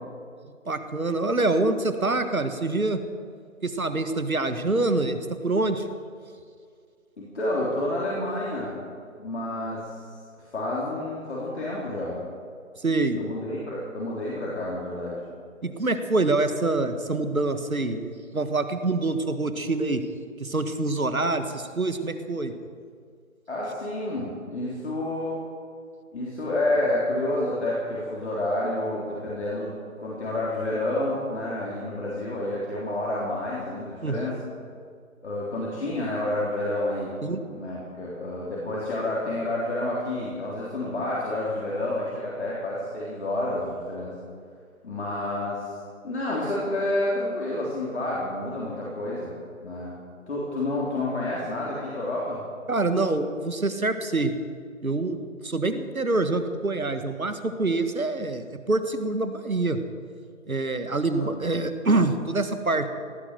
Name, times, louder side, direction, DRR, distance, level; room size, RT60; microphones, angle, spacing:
voice 1, 0.6-3.0 3.6-5.8 12.8-13.2 15.6-20.0 20.4-22.5 34.0-34.3 37.2-37.4 52.7-54.3 54.8-59.8 60.5-62.9, right 2 dB, 85° right, 9 dB, 1.7 m, -26 dB
voice 2, 7.2-8.8 9.2-9.9 10.5-12.2 13.2-15.2 23.5-25.4 26.1-34.4 35.2-37.1 37.5-44.2 44.8-45.7 46.0-49.4 49.6-49.9 50.3-52.4 61.1-61.4, left 1 dB, 55° left, -5 dB, 3.8 m, -29 dB
18.0 x 10.5 x 7.8 m, 2.1 s
figure-of-eight pair, 155°, 41 cm